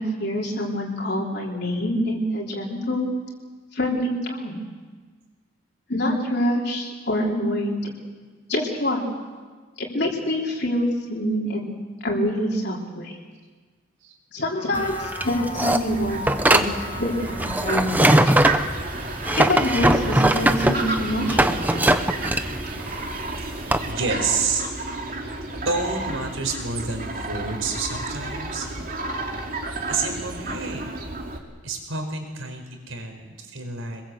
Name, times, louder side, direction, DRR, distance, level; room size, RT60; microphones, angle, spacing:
voice 1, 0.0-3.1 3.7-4.6 5.9-7.9 8.5-9.0 9.8-11.7 12.0-13.2 14.3-16.7 17.0-18.1 19.3-21.8, left 1 dB, 50° left, -2 dB, 3.7 m, -26 dB
Trumpet, 14.5-19.8, left 3 dB, 30° left, 1.7 m, -40 dB
sound 1, 14.8-23.9, right 1 dB, 10° right, 0.8 m, -21 dB
Fowl, 15.9-31.4, right 2 dB, 45° right, 2.9 m, -32 dB
voice 2, 23.4-24.6 25.6-28.8 29.9-30.9 31.6-34.0, right 4 dB, 80° right, 4 dB, 4.8 m, -29 dB
26.0 x 21.5 x 8.0 m, 1.4 s
head